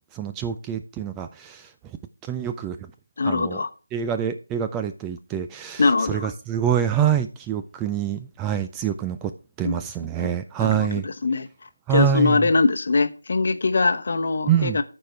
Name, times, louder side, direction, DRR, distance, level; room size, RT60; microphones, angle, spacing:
voice 1, 0.1-1.7 2.2-2.8 3.3-3.6 3.9-9.3 9.6-11.1 11.9-12.4 14.5-14.8, right 9 dB, 10° right, 0.3 m, -25 dB
voice 2, 3.2-3.7 5.8-6.3 9.6-9.8 10.6-11.5 11.9-14.8, left 3 dB, 45° left, 0.9 m, -22 dB
13.5 x 4.9 x 3.4 m
figure-of-eight pair, 165°, 0 cm